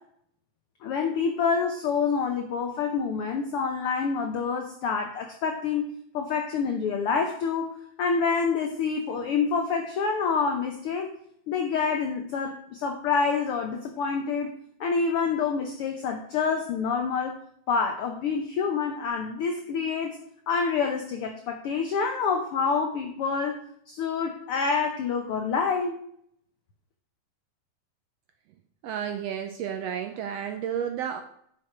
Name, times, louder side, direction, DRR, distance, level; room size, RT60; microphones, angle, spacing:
voice 1, 0.8-11.1 11.5-14.5 14.8-17.4 17.7-20.2 20.5-23.6 23.9-26.0, left 5 dB, 75° left, 4 dB, 1.3 m, -27 dB
voice 2, 28.8-31.2, right 8 dB, 85° right, 7 dB, 1.4 m, -31 dB
10.5 x 6.4 x 4.4 m, 0.68 s
omnidirectional pair, 3.6 m